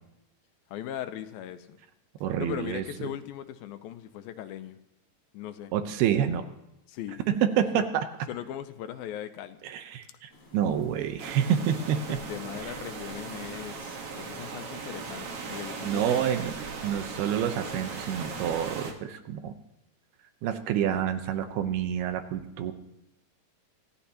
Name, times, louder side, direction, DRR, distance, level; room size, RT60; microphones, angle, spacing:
voice 1, 0.7-1.8 2.4-4.8 5.3-5.7 6.9-7.2 7.8-7.9 8.3-9.6 12.1-16.2, left 11 dB, 80° left, 9 dB, 2.5 m, -39 dB
voice 2, 2.2-2.8 5.7-6.5 7.3-7.9 9.6-12.2 15.8-16.5 16.8-19.5 20.4-22.7, right 9 dB, 80° right, 8 dB, 2.9 m, -28 dB
sound 1, 10.3-18.1, left 1 dB, 40° left, 5.0 m, -54 dB
sound 2, 11.2-18.9, right 4 dB, 55° right, 1.7 m, -38 dB
25.5 x 15.0 x 2.9 m, 0.87 s
omnidirectional pair, 4.5 m